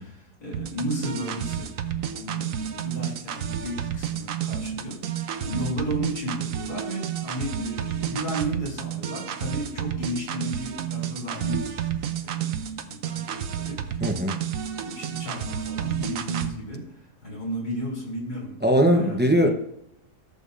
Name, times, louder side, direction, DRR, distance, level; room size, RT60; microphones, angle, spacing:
voice 1, 0.0-11.8 12.2-13.8 14.5-19.3, equal, 75° left, -3 dB, 3.6 m, -34 dB
sound 1, 0.5-16.5, right 9 dB, 65° right, 1.0 m, -31 dB
voice 2, 14.0-14.4 18.6-19.5, equal, 10° right, 2 dB, 0.4 m, -20 dB
14.5 x 7.0 x 2.5 m, 0.80 s
omnidirectional pair, 1.7 m